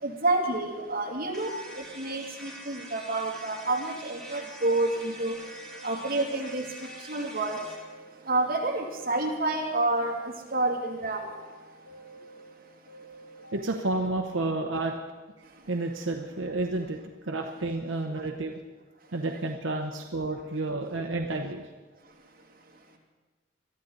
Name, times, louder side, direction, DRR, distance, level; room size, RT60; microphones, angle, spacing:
voice 1, 0.0-1.5 2.0-5.4 5.8-6.6 7.1-7.6 8.3-11.2 19.3-19.4, right 2 dB, 45° right, -2 dB, 2.7 m, -28 dB
sound 1, 1.3-7.8, right 1 dB, 5° left, 2.6 m, -45 dB
sound 2, 4.0-5.9 6.2-8.1 8.4-10.3 10.7-12.5 12.9-14.7, right 2 dB, 70° left, 5.0 m, -50 dB
voice 2, 13.5-14.9 15.7-17.0 17.2-18.6 19.1-21.6, right 2 dB, 80° right, 2 dB, 0.9 m, -30 dB
22.5 x 13.0 x 4.0 m, 1.3 s
head